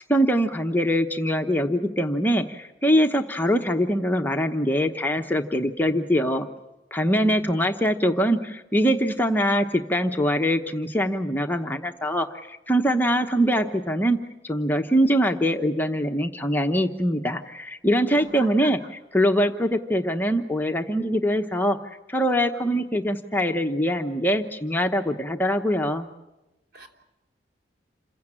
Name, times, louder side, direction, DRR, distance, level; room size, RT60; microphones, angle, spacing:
voice 1, 0.0-6.5 6.9-21.8 22.1-26.1, equal, 10° left, 5 dB, 0.9 m, -23 dB
voice 2, 7.1-7.5 18.1-18.7 26.7-26.9, right 1 dB, 60° right, 2 dB, 3.2 m, -39 dB
28.0 x 16.0 x 8.8 m, 0.98 s
head